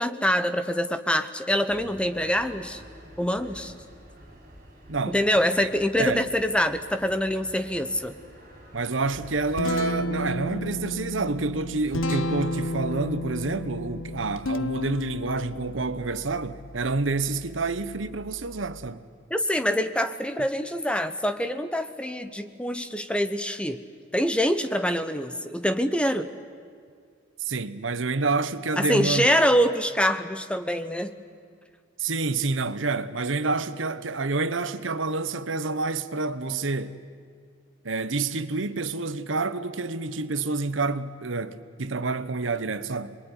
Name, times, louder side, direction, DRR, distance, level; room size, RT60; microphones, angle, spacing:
voice 1, 0.0-2.8 3.2-3.7 5.1-8.2 19.3-23.8 24.1-26.3 28.8-31.1, equal, 5° left, 1.1 m, -25 dB
sound 1, 1.7-9.7, equal, 45° right, 7.6 m, -48 dB
voice 2, 4.9-5.2 5.6-5.7 6.0-6.3 8.7-19.1 27.4-29.4 32.0-37.0 37.8-43.2, right 3 dB, 75° right, 1.1 m, -28 dB
Guitar, 9.1-18.9, left 1 dB, 85° left, 0.9 m, -33 dB
27.5 x 22.0 x 9.8 m
head